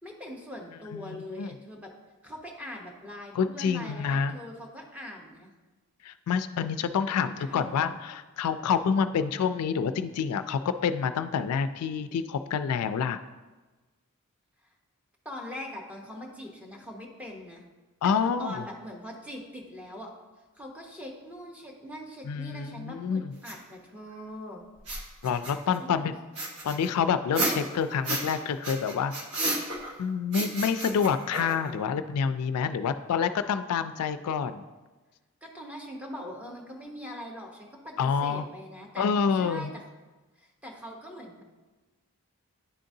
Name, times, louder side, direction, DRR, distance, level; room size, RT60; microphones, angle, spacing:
voice 1, 0.0-1.9 2.2-5.5 7.0-7.9 15.2-17.6 18.0-20.1 20.5-24.7 25.8-26.0 35.4-39.8 40.4-41.4, equal, 5° right, -2 dB, 0.8 m, -42 dB
voice 2, 0.9-1.5 3.3-4.4 6.0-13.2 18.0-18.6 22.2-23.3 25.2-26.2 26.6-29.1 30.0-34.6 38.0-38.4 39.0-39.7, left 6 dB, 85° left, 11 dB, 0.3 m, -28 dB
sound 1, 23.4-23.5 24.8-25.8 26.4-28.4 28.6-30.0 30.3-31.8, right 1 dB, 80° right, 1.0 m, -32 dB
10.0 x 3.7 x 2.7 m, 1.2 s
head